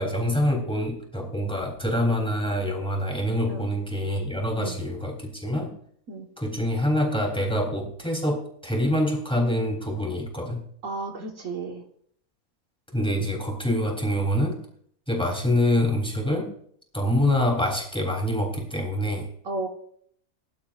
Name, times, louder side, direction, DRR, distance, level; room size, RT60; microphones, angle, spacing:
voice 1, 0.0-5.7 6.4-10.7 12.9-14.6 15.1-16.5 16.9-19.3, left 1 dB, 5° left, 1 dB, 3.4 m, -25 dB
voice 2, 10.8-11.8 19.4-19.7, right 3 dB, 60° right, 1 dB, 1.8 m, -33 dB
22.5 x 11.5 x 2.5 m, 0.63 s
omnidirectional pair, 1.6 m